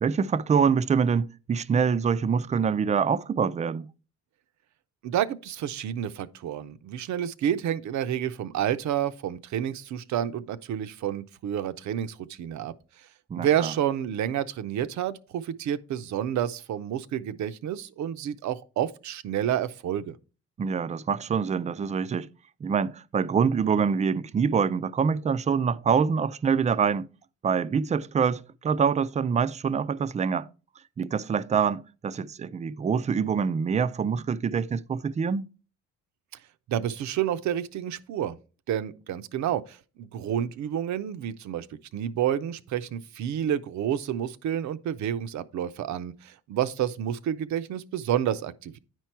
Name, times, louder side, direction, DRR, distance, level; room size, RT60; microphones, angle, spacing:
voice 1, 0.0-3.9 13.3-13.7 20.6-22.3 22.6-27.1 27.4-30.5 31.0-35.5, right 6 dB, 25° right, 0.4 m, -25 dB
voice 2, 5.0-12.7 13.3-20.2 36.7-38.4 38.7-41.7 41.9-48.8, right 10 dB, 70° right, 0.6 m, -29 dB
9.3 x 4.5 x 4.5 m
cardioid pair, 90°, 30 cm